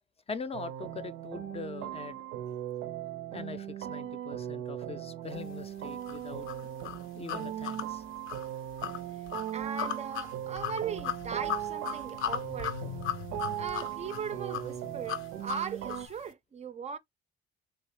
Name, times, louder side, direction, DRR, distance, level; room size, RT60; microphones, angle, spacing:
voice 1, 0.3-2.2 3.3-6.7 7.1-8.0, left 5 dB, 30° left, 0.4 m, -42 dB
sound 1, 0.5-16.1, right 11 dB, 90° right, 0.5 m, -38 dB
sound 2, 6.1-16.1, left 11 dB, 80° left, 0.6 m, -38 dB
voice 2, 9.5-12.8 13.6-17.0, right 7 dB, 35° right, 0.4 m, -38 dB
3.3 x 3.0 x 3.1 m
cardioid pair, 90°, 20 cm